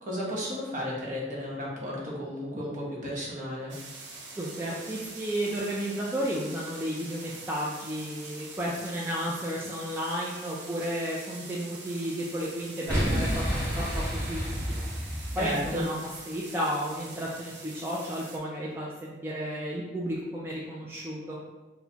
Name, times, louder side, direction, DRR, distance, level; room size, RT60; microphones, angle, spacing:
voice 1, 0.0-3.7 15.4-15.8, equal, 45° right, -4 dB, 0.9 m, -33 dB
sound 1, 3.7-18.4, right 3 dB, 80° right, 0.6 m, -45 dB
voice 2, 4.4-14.9 15.4-16.0 16.3-21.4, equal, 15° right, -5 dB, 0.3 m, -33 dB
Boom, 12.9-15.9, equal, 10° left, 1.0 m, -30 dB
4.2 x 2.2 x 2.8 m, 1.1 s
head